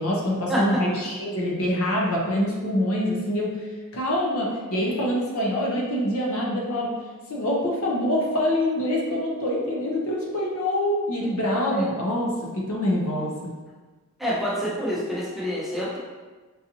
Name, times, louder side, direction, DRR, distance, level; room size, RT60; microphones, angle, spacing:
voice 1, 0.0-3.6 3.9-6.9 7.3-13.3, left 1 dB, 70° left, -2 dB, 0.7 m, -25 dB
voice 2, 14.2-16.0, equal, ahead, -7 dB, 0.6 m, -27 dB
3.9 x 2.6 x 2.7 m, 1.3 s
head